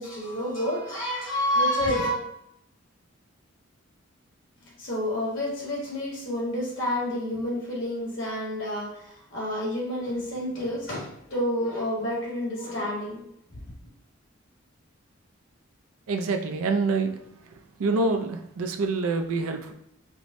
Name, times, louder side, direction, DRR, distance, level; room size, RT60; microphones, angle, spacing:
voice 1, 0.0-2.2 4.8-13.2, left 1 dB, 60° left, -4 dB, 1.3 m, -29 dB
voice 2, 16.1-17.2 17.8-19.7, right 3 dB, 80° right, 5 dB, 0.4 m, -26 dB
4.6 x 2.1 x 2.6 m, 0.76 s
head